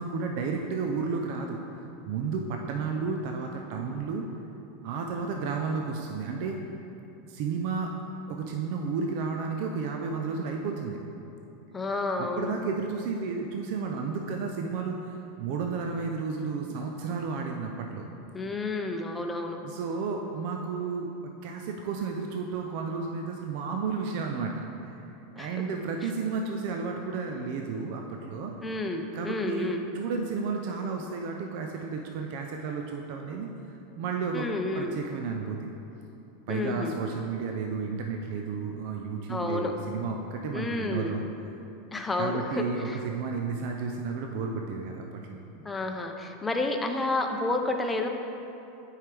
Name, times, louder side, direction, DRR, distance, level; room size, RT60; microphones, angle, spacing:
voice 1, 0.0-1.6 2.0-4.3 4.8-6.6 7.3-7.9 8.3-11.0 12.2-18.1 19.6-25.1 25.3-28.5 29.1-34.5 34.7-35.7 36.5-41.2 42.2-45.6, right 5 dB, 60° right, 2 dB, 0.5 m, -32 dB
voice 2, 11.7-12.5 18.3-19.6 25.4-25.6 28.6-29.8 34.3-34.9 36.5-37.0 39.3-39.7 40.5-41.2 41.9-43.0 45.6-48.1, left 2 dB, 15° left, 3 dB, 0.6 m, -30 dB
8.9 x 4.6 x 3.4 m, 2.9 s
hypercardioid pair, 105°, 0 cm